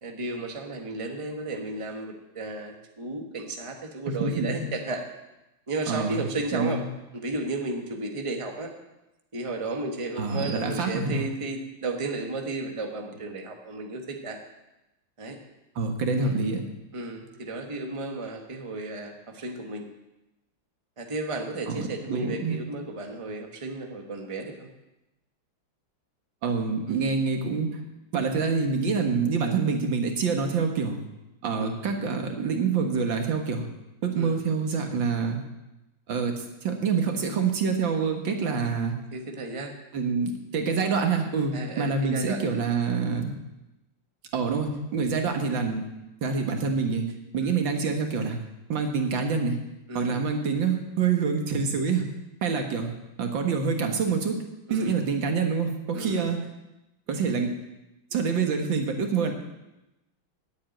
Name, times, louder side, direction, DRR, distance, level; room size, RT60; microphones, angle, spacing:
voice 1, 0.0-5.1 5.7-6.9 7.1-8.7 9.3-14.4 15.2-15.4 16.2-16.3 16.9-19.8 21.0-24.7 26.9-27.1 31.6-32.0 34.1-34.4 39.1-39.7 41.5-42.4 47.4-47.6 49.9-50.2 54.7-55.0 55.9-56.3, right 2 dB, 20° right, 3 dB, 1.2 m, -34 dB
voice 2, 4.1-4.6 5.9-6.8 10.2-11.3 15.8-16.6 21.7-22.6 26.4-27.8 28.1-31.0 31.4-33.7 34.0-35.4 36.1-38.9 39.9-43.3 44.3-45.8 46.2-47.1 47.3-48.4 48.7-49.6 50.0-52.1 52.4-52.9 53.2-54.4 54.7-56.4 57.1-57.5 58.1-59.3, right 5 dB, 75° right, 4 dB, 2.2 m, -26 dB
10.0 x 8.4 x 9.0 m, 0.96 s
omnidirectional pair, 2.1 m